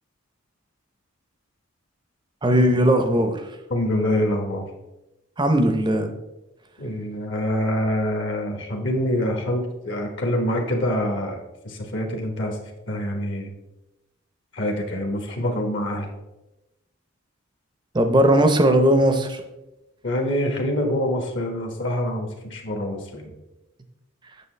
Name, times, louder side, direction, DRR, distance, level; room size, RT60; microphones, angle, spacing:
voice 1, 2.4-3.4 5.4-6.1 17.9-19.4, right 1 dB, 20° right, 7 dB, 0.7 m, -18 dB
voice 2, 3.7-4.6 6.8-11.4 11.6-12.6 12.9-13.5 14.5-16.1 20.0-23.3, left 1 dB, 55° left, 2 dB, 1.2 m, -25 dB
8.3 x 6.6 x 3.3 m, 0.97 s
head